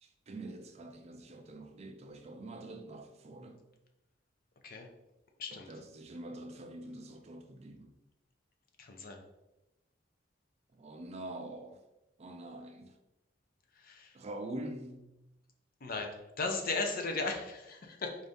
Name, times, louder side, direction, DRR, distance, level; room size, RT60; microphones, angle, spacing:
voice 1, 0.0-3.6 5.5-7.9 10.7-11.8 12.2-13.0 14.1-15.1, right 1 dB, 35° right, 0.4 m, -45 dB
voice 2, 8.8-9.2 13.8-14.1 15.8-18.2, left 3 dB, 50° left, 0.6 m, -36 dB
3.9 x 2.6 x 3.5 m
head